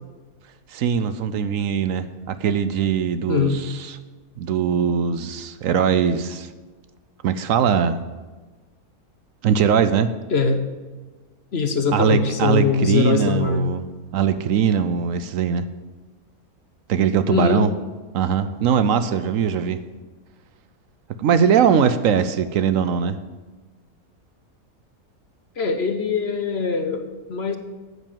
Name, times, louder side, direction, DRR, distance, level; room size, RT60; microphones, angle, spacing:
voice 1, 0.7-4.0 4.4-6.5 7.2-8.0 9.4-10.1 11.9-13.9 14.1-15.7 16.9-17.7 18.1-19.8 21.2-23.2, right 7 dB, 70° right, 12 dB, 1.0 m, -21 dB
voice 2, 3.3-3.6 10.3-10.6 11.5-13.8 17.3-17.6 25.6-27.6, left 5 dB, 50° left, 7 dB, 1.1 m, -22 dB
9.6 x 8.2 x 7.4 m, 1.3 s
omnidirectional pair, 1.5 m